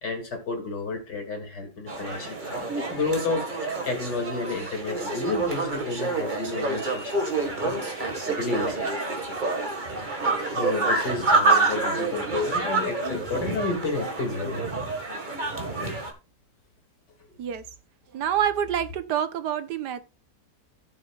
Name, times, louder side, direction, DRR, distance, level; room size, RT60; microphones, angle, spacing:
voice 1, 0.0-9.0 10.5-14.7 15.6-16.0, left 3 dB, 80° left, 3.1 m, -31 dB
sound 1, 1.9-16.1, right 3 dB, 30° right, 1.8 m, -28 dB
voice 2, 18.1-20.0, right 9 dB, 75° right, 1.5 m, -27 dB
15.0 x 7.0 x 2.4 m
omnidirectional pair, 1.8 m